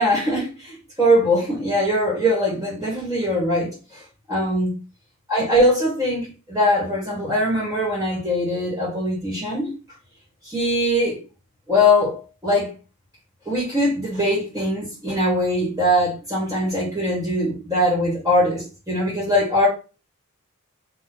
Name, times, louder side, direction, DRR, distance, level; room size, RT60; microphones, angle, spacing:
voice 1, 0.0-4.7 5.3-9.7 10.4-11.2 11.7-12.7 13.5-19.7, left 1 dB, 15° right, 2.0 m, -21 dB
4.3 x 3.0 x 3.9 m
head